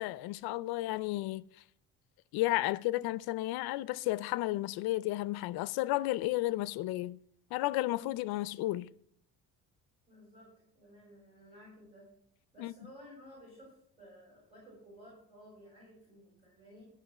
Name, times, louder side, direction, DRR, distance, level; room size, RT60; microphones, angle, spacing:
voice 1, 0.0-1.5 2.3-7.2 7.5-8.9 12.6-12.7, left 17 dB, 85° left, 0.6 m, -33 dB
voice 2, 10.1-12.1 12.5-16.9, equal, 15° right, 6.3 m, -55 dB
13.5 x 5.6 x 7.2 m
cardioid pair, 175°, 37 cm